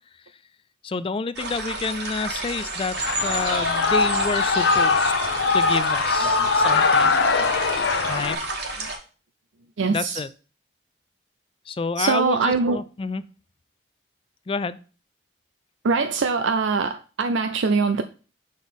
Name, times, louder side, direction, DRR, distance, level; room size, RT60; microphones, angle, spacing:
voice 1, 0.8-3.0 3.2-5.3 5.5-7.1 8.1-8.4 9.9-10.3 11.7-13.2 14.5-14.8, left 4 dB, 30° left, 0.3 m, -29 dB
sound 1, 1.4-9.0, right 3 dB, 60° right, 1.7 m, -31 dB
Shout / Cheering, 3.0-8.4, left 4 dB, 65° left, 0.7 m, -21 dB
voice 2, 9.8-10.2 12.0-12.8 15.8-18.0, right 4 dB, 75° right, 0.5 m, -22 dB
6.4 x 4.0 x 5.3 m
head